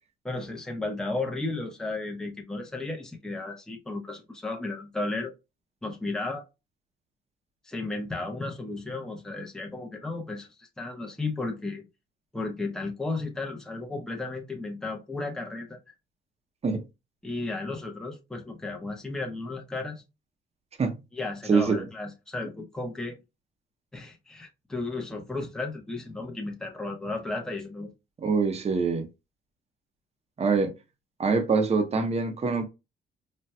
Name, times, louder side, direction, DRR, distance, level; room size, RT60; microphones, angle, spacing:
voice 1, 0.2-5.3 5.8-6.4 7.6-11.8 12.3-15.8 17.2-20.0 21.1-23.2 23.9-27.9, left 2 dB, 5° left, 0.7 m, -34 dB
voice 2, 21.5-21.8 28.2-29.1 30.4-30.7 31.2-32.7, right 4 dB, 30° right, 0.7 m, -24 dB
4.2 x 2.3 x 2.2 m
cardioid pair, 90°, 20 cm